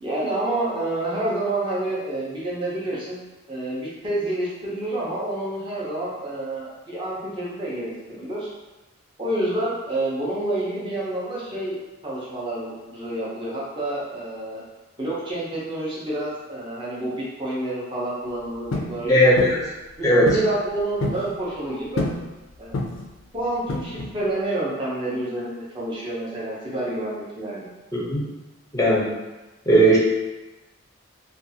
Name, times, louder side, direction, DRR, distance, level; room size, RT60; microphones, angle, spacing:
voice 1, 0.0-3.2 3.5-8.5 9.2-11.8 12.0-14.6 15.0-19.3 20.0-22.1 22.6-22.8 23.3-27.7, right 1 dB, 25° right, -7 dB, 0.6 m, -28 dB
sound 1, 18.7-19.0 19.4-19.6 20.3-20.5 20.8-21.3 22.0-22.3 22.7-23.1 23.7-24.2, left 2 dB, 70° left, 0.4 m, -27 dB
voice 2, 19.1-19.6 20.0-20.4 27.9-28.2 28.7-29.1 29.7-30.0, right 1 dB, 15° left, -5 dB, 0.5 m, -17 dB
2.5 x 2.3 x 2.7 m, 1.1 s
head